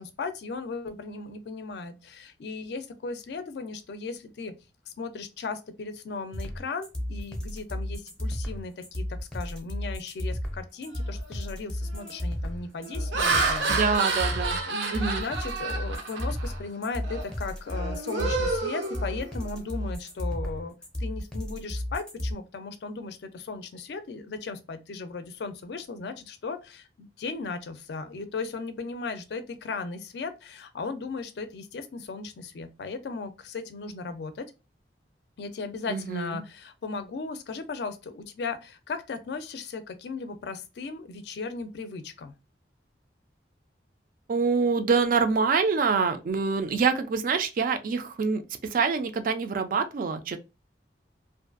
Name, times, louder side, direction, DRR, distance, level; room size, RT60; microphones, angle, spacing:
voice 1, 0.0-4.5 4.9-13.8 14.7-34.5 35.4-42.3, left 4 dB, 65° left, 0.4 m, -37 dB
sound 1, 6.3-22.3, left 1 dB, 5° left, 0.5 m, -33 dB
Laughter, 11.0-11.3 11.9-12.2 12.8-16.6 17.0-17.3 17.7-19.6, right 3 dB, 85° right, 0.6 m, -30 dB
voice 2, 13.7-14.6 14.9-15.2 35.9-36.4 44.3-48.4 48.7-50.4, right 5 dB, 50° right, 0.3 m, -25 dB
2.5 x 2.3 x 2.4 m
head